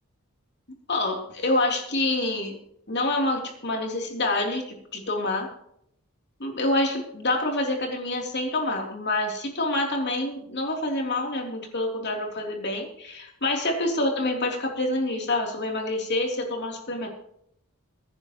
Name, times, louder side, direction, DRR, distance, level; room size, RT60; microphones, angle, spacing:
voice 1, 0.9-2.5 2.9-4.7 4.9-5.5 6.4-17.1, left 2 dB, 50° left, 1 dB, 3.3 m, -27 dB
22.5 x 10.5 x 3.1 m, 0.70 s
head